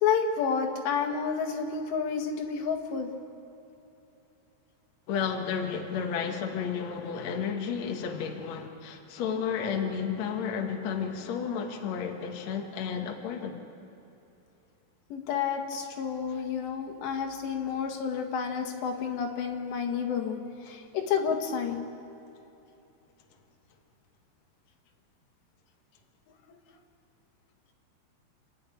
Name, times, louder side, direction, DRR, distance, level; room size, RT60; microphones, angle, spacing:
voice 1, 0.0-3.1 15.1-21.9, left 6 dB, 80° left, 3 dB, 3.8 m, -30 dB
voice 2, 5.1-13.6 16.3-16.4 20.7-20.8, left 7 dB, 55° left, 3 dB, 2.2 m, -32 dB
28.0 x 11.0 x 9.2 m, 2.9 s
omnidirectional pair, 4.9 m